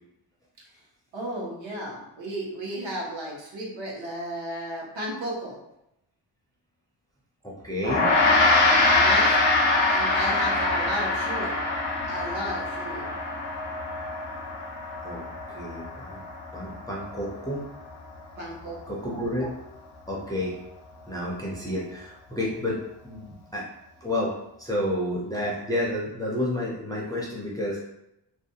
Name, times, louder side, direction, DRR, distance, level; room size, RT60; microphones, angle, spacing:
voice 1, 1.1-5.6 8.8-9.4 9.9-11.6 12.1-13.1 18.4-19.0, right 1 dB, 75° right, -4 dB, 0.9 m, -34 dB
voice 2, 7.4-8.1 15.0-15.2 15.5-16.2 16.5-17.7 18.9-19.5 20.1-20.5 21.1-23.7 24.0-27.8, left 1 dB, 10° left, -5 dB, 0.4 m, -30 dB
Gong, 7.8-17.4, left 2 dB, 85° left, 0.6 m, -24 dB
2.5 x 2.2 x 2.7 m, 0.82 s
wide cardioid pair, 140°, 46 cm